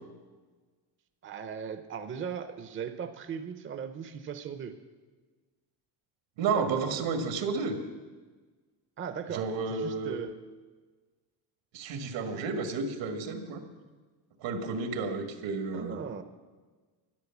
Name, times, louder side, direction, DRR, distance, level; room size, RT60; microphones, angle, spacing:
voice 1, 1.2-4.7 6.5-6.8 9.0-10.4 15.7-16.2, right 7 dB, 30° right, 9 dB, 0.7 m, -38 dB
voice 2, 6.4-7.8 9.3-10.2 11.7-13.6 14.4-16.0, right 4 dB, 80° right, 6 dB, 1.9 m, -31 dB
11.5 x 11.0 x 7.2 m, 1.4 s
cardioid pair, 150°, 43 cm